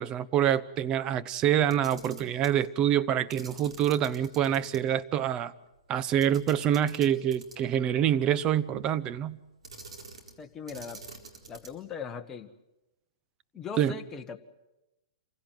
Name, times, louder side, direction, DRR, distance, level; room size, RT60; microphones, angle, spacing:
voice 1, 0.0-5.5 5.9-9.4 13.8-14.0, right 10 dB, 25° right, 0.8 m, -26 dB
Camera, 1.6-2.6 3.3-4.8 5.1-5.2 6.2-7.8 9.6-10.4 10.7-11.9, right 3 dB, 90° right, 4.3 m, -47 dB
voice 2, 10.4-11.0 11.5-12.5 13.5-14.4, left 6 dB, 15° left, 1.4 m, -39 dB
27.0 x 16.5 x 9.3 m
hypercardioid pair, 140°, 3 cm